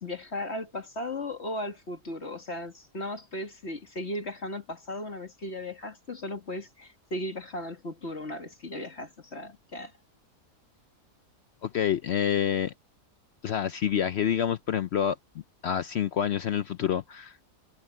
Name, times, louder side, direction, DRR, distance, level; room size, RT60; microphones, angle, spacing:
voice 1, 0.0-9.9, left 1 dB, 40° left, 2.3 m, -36 dB
voice 2, 11.6-12.7 13.4-15.2 15.6-17.4, left 9 dB, 70° left, 0.6 m, -27 dB
omnidirectional pair, 1.7 m